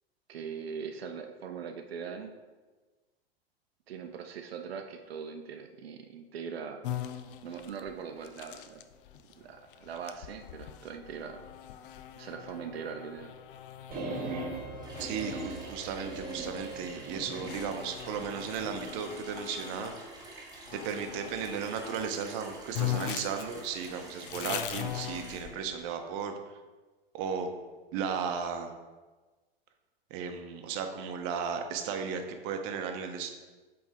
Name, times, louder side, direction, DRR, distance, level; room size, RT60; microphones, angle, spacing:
voice 1, 0.3-2.3 3.9-6.8 7.4-8.8 9.4-11.4 12.2-13.3, right 6 dB, 75° right, 6 dB, 0.6 m, -41 dB
sound 1, 6.8-20.0 20.7-22.1 22.4-22.5 22.7-25.8, left 12 dB, 60° left, 0.5 m, -41 dB
sound 2, 13.9-17.7, right 2 dB, 30° right, 1.5 m, -39 dB
Water tap faucet / Sink (filling or washing), 14.8-25.5, right 2 dB, 10° right, 1.4 m, -49 dB
voice 2, 15.0-19.9 20.7-26.3 27.1-27.5 27.9-28.7 30.1-33.3, right 6 dB, 45° right, 6 dB, 0.8 m, -35 dB
7.9 x 3.5 x 3.5 m, 1.3 s
hypercardioid pair, 100°, 31 cm